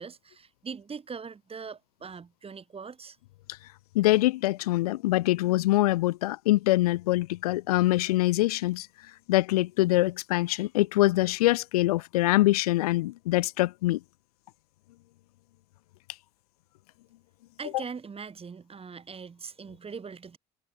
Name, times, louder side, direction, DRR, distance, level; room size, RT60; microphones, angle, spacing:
voice 1, 0.0-3.2 17.6-20.4, right 5 dB, 30° right, 7.3 m, -41 dB
voice 2, 3.9-8.9 9.3-14.0, left 18 dB, 85° left, 0.9 m, -24 dB
hypercardioid pair, 70°, 19 cm